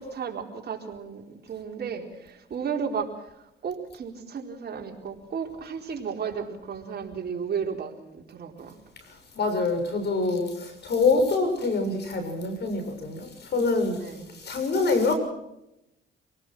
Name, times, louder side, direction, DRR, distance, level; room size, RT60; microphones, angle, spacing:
voice 1, 0.0-8.8 14.0-14.3, right 6 dB, 55° right, 2 dB, 4.2 m, -34 dB
voice 2, 9.1-15.2, left 3 dB, 60° left, 7 dB, 6.9 m, -26 dB
27.0 x 18.5 x 6.2 m, 0.86 s
cardioid pair, 90°, 20 cm